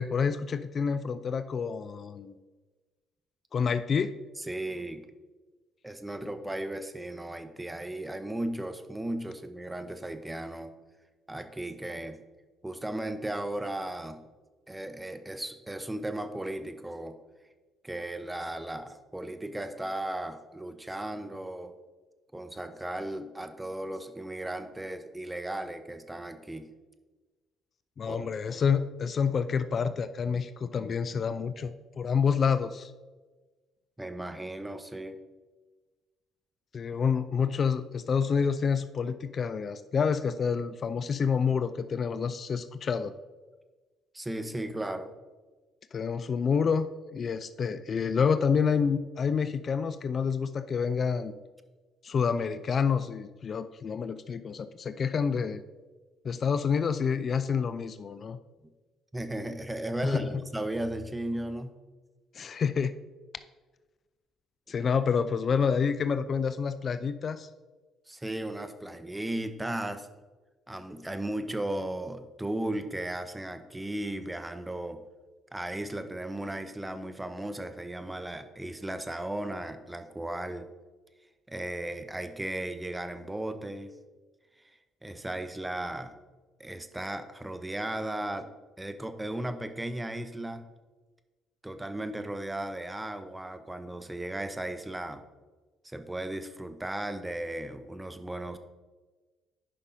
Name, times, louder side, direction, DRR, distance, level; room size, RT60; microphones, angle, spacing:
voice 1, 0.0-2.4 3.5-4.1 28.0-32.9 36.7-43.1 45.9-46.9 47.1-51.3 52.0-55.6 56.2-58.4 60.0-60.4 62.3-62.9 64.7-67.5, left 6 dB, 50° left, 12 dB, 0.3 m, -28 dB
voice 2, 4.4-5.0 5.8-10.7 11.3-12.2 12.6-14.2 14.7-17.2 17.8-21.7 22.3-26.7 28.1-28.3 34.0-35.2 44.1-45.1 59.1-61.7 68.1-70.1 70.7-75.0 75.5-80.7 81.5-83.9 85.0-86.1 86.6-88.5 88.8-90.6 91.6-95.2 95.8-98.6, right 1 dB, 15° right, 9 dB, 0.7 m, -36 dB
10.0 x 5.4 x 2.7 m, 1.3 s
hypercardioid pair, 55°, 0 cm